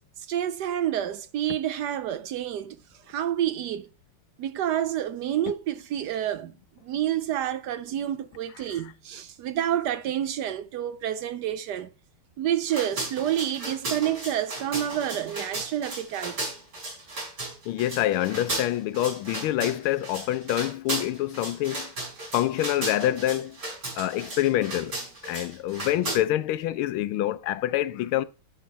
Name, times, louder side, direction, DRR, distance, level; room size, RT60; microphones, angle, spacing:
voice 1, 0.2-2.8 3.1-3.9 4.4-6.5 6.8-11.9 12.4-16.4 24.0-24.1, right 11 dB, 75° right, 0.9 m, -29 dB
sound 1, 12.7-26.2, right 2 dB, 55° right, 4.8 m, -35 dB
voice 2, 17.7-21.9 22.3-23.6 23.9-24.9 25.3-28.3, left 14 dB, 80° left, 1.4 m, -26 dB
10.5 x 4.5 x 4.1 m
omnidirectional pair, 2.3 m